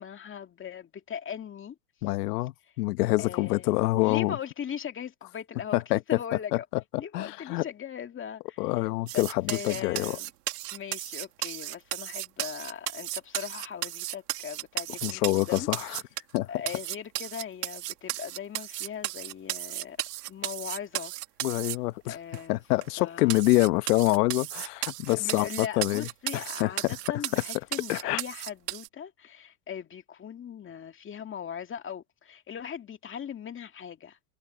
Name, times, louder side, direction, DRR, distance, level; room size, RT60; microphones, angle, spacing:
voice 1, 0.0-1.8 3.2-6.6 6.9-8.7 9.1-10.3 10.7-15.7 16.5-20.0 20.3-21.1 22.1-22.6 23.0-23.4 25.1-34.2, left 8 dB, 25° left, 2.2 m, -39 dB
voice 2, 2.0-4.4 5.7-6.2 6.5-7.7 8.6-10.1 15.0-16.0 16.3-16.5 21.4-22.2 22.5-26.1 26.3-27.0 27.9-28.2, left 20 dB, 80° left, 1.1 m, -26 dB
sound 1, 9.1-16.4 16.7-21.8 22.3-22.4 22.8-22.9 23.3-28.9, right 17 dB, 85° right, 2.0 m, -35 dB
supercardioid pair, 115°, 46 cm